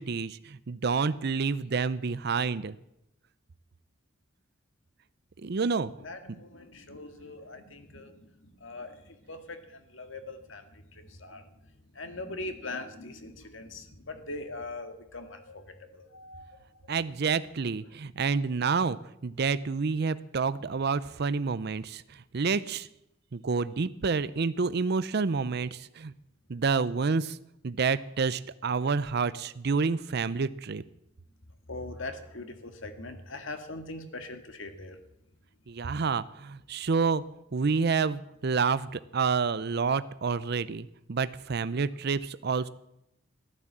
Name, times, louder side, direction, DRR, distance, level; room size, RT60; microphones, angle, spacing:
voice 1, 0.0-2.8 5.4-5.9 16.9-19.0 19.2-22.9 23.3-26.1 26.5-27.4 27.6-30.8 35.7-37.2 37.5-42.7, right 5 dB, 55° right, 15 dB, 0.5 m, -28 dB
voice 2, 6.0-11.5 11.9-16.9 31.7-35.0, left 2 dB, 70° left, 8 dB, 1.9 m, -42 dB
14.5 x 12.5 x 7.4 m, 0.80 s
head